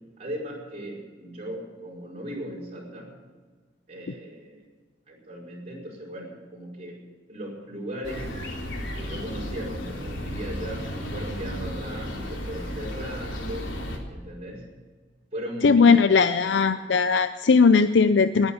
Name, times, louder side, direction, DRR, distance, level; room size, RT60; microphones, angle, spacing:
voice 1, 0.2-3.1 3.9-4.6 5.1-7.0 7.3-8.3 8.9-13.7 14.1-14.6 15.3-16.6, right 1 dB, 35° right, -4 dB, 5.1 m, -37 dB
sound 1, 8.0-14.0, equal, 85° left, 3.5 m, -34 dB
voice 2, 15.6-18.5, left 5 dB, 65° left, 11 dB, 0.5 m, -18 dB
19.5 x 9.7 x 7.0 m, 1.4 s
head